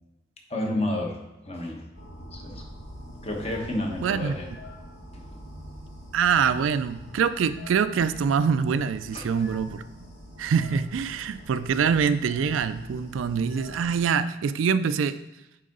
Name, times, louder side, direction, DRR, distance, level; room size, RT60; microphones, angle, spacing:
voice 1, 0.5-1.2 1.4-1.8 2.3-2.6 3.2-4.5 5.1-5.2 9.1-9.3, left 1 dB, 30° left, 1 dB, 1.1 m, -30 dB
sound 1, 1.9-14.0, equal, 65° left, 2.0 m, -44 dB
voice 2, 4.0-4.3 6.1-9.8 10.4-15.2, right 6 dB, 80° right, 13 dB, 0.3 m, -24 dB
9.2 x 3.8 x 3.8 m, 0.95 s
head